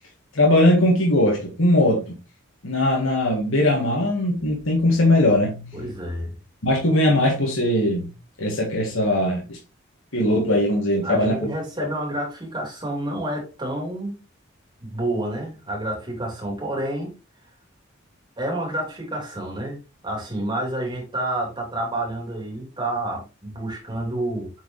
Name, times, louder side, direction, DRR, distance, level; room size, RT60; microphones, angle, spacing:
voice 1, 0.3-2.2 2.6-5.9 6.6-8.1 8.4-9.6 10.1-11.5, left 1 dB, 80° left, 0 dB, 1.7 m, -20 dB
voice 2, 5.7-6.3 11.0-14.1 14.8-17.1 18.4-19.8 20.0-24.5, right 1 dB, 25° right, -1 dB, 3.2 m, -29 dB
7.8 x 4.9 x 3.2 m, 0.29 s
head